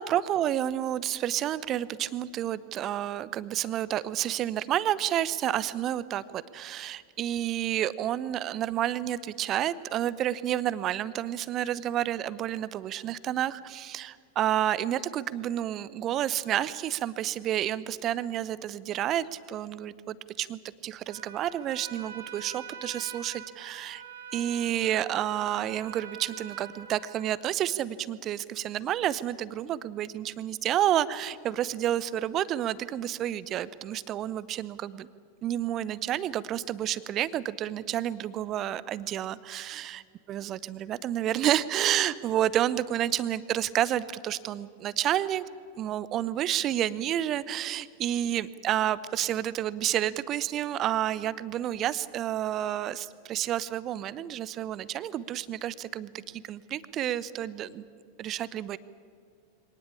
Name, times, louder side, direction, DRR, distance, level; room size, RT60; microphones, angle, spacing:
voice 1, 0.0-24.0 24.3-35.1 35.4-40.0 40.3-45.4 45.8-57.8 58.2-58.8, right 11 dB, 30° right, 18 dB, 0.8 m, -30 dB
Trumpet, 21.0-27.5, right 7 dB, 65° right, 2.2 m, -45 dB
23.5 x 18.5 x 8.7 m, 2.3 s
figure-of-eight pair, 90°, 0 cm